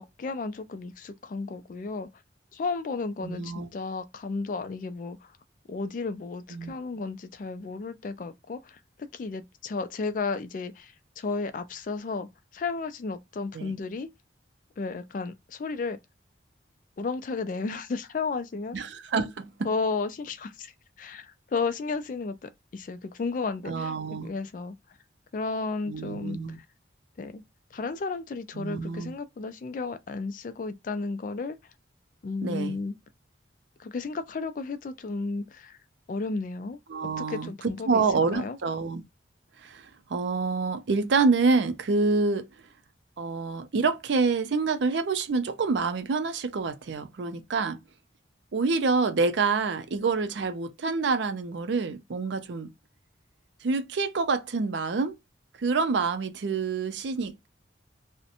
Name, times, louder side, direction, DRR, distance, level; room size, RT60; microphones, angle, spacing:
voice 1, 0.0-2.1 2.5-5.2 5.7-8.8 9.1-12.3 12.5-14.1 14.8-16.0 17.0-18.8 19.6-20.7 21.0-23.9 24.2-24.8 25.3-26.4 27.2-27.4 27.7-31.6 32.2-32.9 33.8-35.8 36.1-38.0 38.3-38.6, left 4 dB, 45° left, 0.3 m, -33 dB
voice 2, 3.2-3.7 6.5-6.7 13.5-13.7 18.7-19.7 23.7-24.3 25.9-26.6 28.6-29.1 32.4-32.8 36.9-39.0 39.6-42.5 43.2-47.8 48.5-52.7 53.6-55.2 55.6-57.5, right 4 dB, 70° right, 0.4 m, -27 dB
2.5 x 2.1 x 2.7 m
head